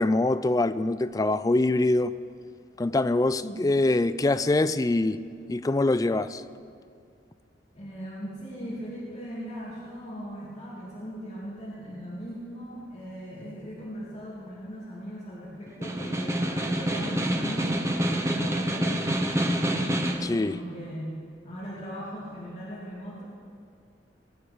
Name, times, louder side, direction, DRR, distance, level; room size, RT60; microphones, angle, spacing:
voice 1, 0.0-2.1 2.8-5.2 5.5-6.4 20.2-20.6, left 2 dB, 20° left, 0.3 m, -24 dB
voice 2, 7.7-20.0 20.3-21.2 21.4-23.2, equal, 35° left, 2.8 m, -39 dB
Snare drum, 15.7-20.3, right 1 dB, 15° right, 0.9 m, -27 dB
21.0 x 8.7 x 4.7 m
head